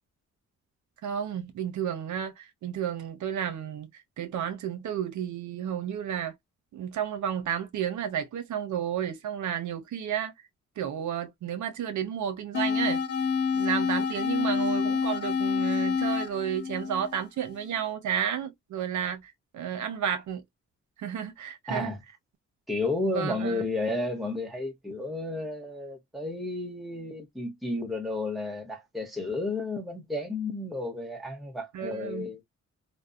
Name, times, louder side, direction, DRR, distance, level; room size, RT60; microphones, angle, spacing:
voice 1, 1.0-6.3 6.7-10.3 10.8-13.0 13.5-20.4 21.0-21.9 23.1-23.6 31.7-32.3, right 9 dB, 75° right, 0.7 m, -32 dB
sound 1, 12.5-17.6, left 6 dB, 55° left, 0.4 m, -28 dB
voice 2, 21.7-22.0 22.7-32.4, left 2 dB, ahead, 0.6 m, -32 dB
2.6 x 2.1 x 2.3 m
wide cardioid pair, 175°, 30 cm